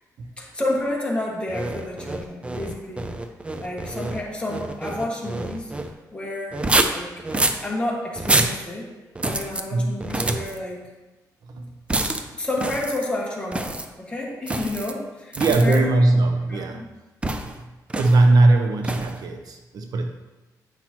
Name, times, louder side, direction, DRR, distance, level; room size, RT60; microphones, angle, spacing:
voice 1, 0.4-3.0 3.6-5.7 6.1-6.6 6.9-7.1 7.6-8.9 9.2-10.8 12.0-12.1 12.4-15.8 16.5-16.9, left 1 dB, 15° left, -3 dB, 1.6 m, -30 dB
sound 1, 1.5-5.9 6.5-7.6 8.2-8.6 9.1-9.6 10.0-10.6 11.9-12.2 12.6-13.1 13.5-13.9 14.5-14.9 15.3-15.8 17.2-17.5 17.9-18.2 18.8-19.2, right 2 dB, 15° right, 0.5 m, -26 dB
voice 2, 15.4-16.9 17.4-17.7 18.0-20.1, right 2 dB, 65° right, 5 dB, 0.7 m, -20 dB
8.8 x 5.9 x 3.0 m, 1.1 s
cardioid pair, 115°, 7 cm